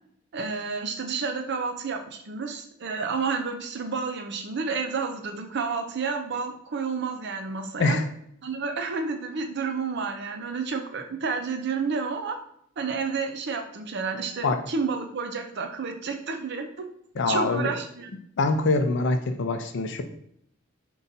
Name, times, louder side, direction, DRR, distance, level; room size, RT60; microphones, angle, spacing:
voice 1, 0.3-8.0 8.4-12.4 12.8-16.7 17.3-18.1, right 5 dB, 60° right, 5 dB, 0.5 m, -30 dB
voice 2, 17.2-17.7 18.4-20.0, left 3 dB, 65° left, 7 dB, 0.4 m, -24 dB
3.9 x 2.3 x 4.0 m, 0.71 s
head